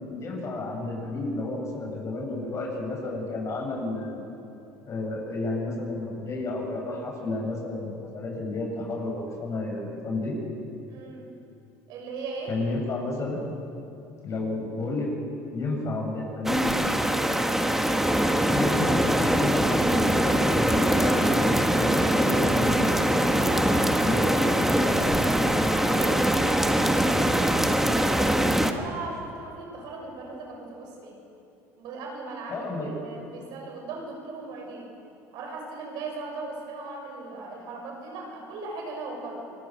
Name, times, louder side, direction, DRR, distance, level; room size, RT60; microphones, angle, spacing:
voice 1, 0.1-4.3 4.9-10.4 12.5-13.4 14.2-15.1 15.5-16.8 18.5-20.3 20.5-21.9 22.2-22.9 24.0-25.2 32.5-32.9, left 2 dB, 40° left, 0 dB, 7.9 m, -31 dB
voice 2, 10.9-11.3 11.9-12.6 23.4-24.0 24.4-24.6 25.6-31.1 31.8-34.9 35.3-39.5, right 3 dB, 65° right, 0 dB, 6.8 m, -38 dB
sound 1, 16.5-28.7, right 1 dB, 5° right, 1.6 m, -23 dB
27.0 x 20.0 x 6.7 m, 2.8 s
supercardioid pair, 85°, 8 cm